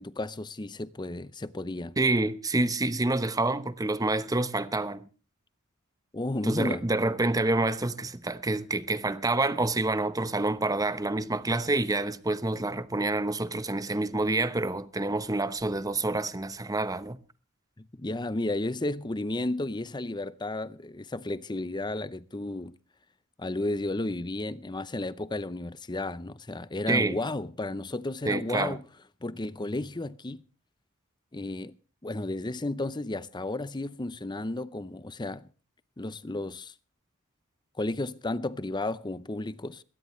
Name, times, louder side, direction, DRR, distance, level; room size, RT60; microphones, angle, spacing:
voice 1, 0.0-2.0 6.1-6.9 17.8-22.7 23.4-28.8 29.2-30.4 31.3-31.7 32.0-35.5 36.0-36.7 37.8-39.8, left 2 dB, 20° left, 0.7 m, -33 dB
voice 2, 2.0-5.0 6.4-17.2 26.9-27.2 28.3-28.8, right 2 dB, 15° right, 1.0 m, -27 dB
21.0 x 17.5 x 3.2 m
head